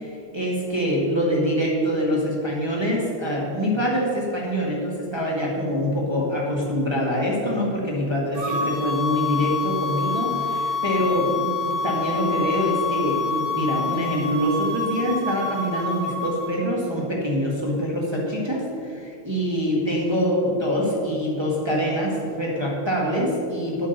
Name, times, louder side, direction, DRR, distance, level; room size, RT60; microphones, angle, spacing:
voice 1, 0.0-23.9, equal, 10° right, -4 dB, 1.3 m, -25 dB
sound 1, 8.3-16.5, left 4 dB, 35° right, 3.3 m, -27 dB
9.4 x 8.2 x 6.7 m, 2.4 s
omnidirectional pair, 3.5 m